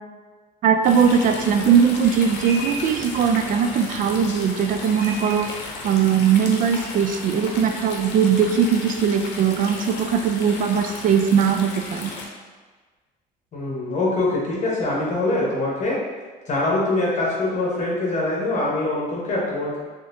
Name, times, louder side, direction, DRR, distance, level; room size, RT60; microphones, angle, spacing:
voice 1, 0.6-5.5 5.8-12.1, right 7 dB, 50° right, 6 dB, 0.4 m, -20 dB
sound 1, 0.8-12.3, left 2 dB, 85° left, 0.7 m, -34 dB
voice 2, 13.5-16.0 16.5-19.8, left 2 dB, 45° left, -5 dB, 1.0 m, -23 dB
4.0 x 3.0 x 2.6 m, 1.4 s
cardioid pair, 110°, 17 cm